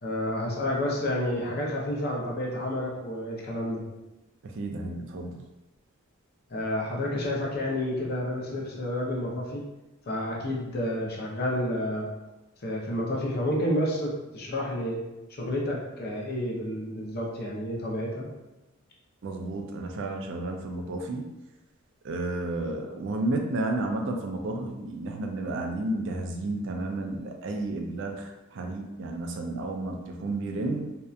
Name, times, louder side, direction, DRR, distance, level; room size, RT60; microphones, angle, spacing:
voice 1, 0.0-3.8 6.5-9.6 10.1-12.1 12.6-15.0 15.4-18.3, left 1 dB, 50° left, -2 dB, 0.6 m, -30 dB
voice 2, 4.4-5.5 19.2-21.3 22.0-30.9, right 2 dB, 65° right, 3 dB, 0.4 m, -32 dB
2.7 x 2.2 x 2.4 m, 1.0 s
head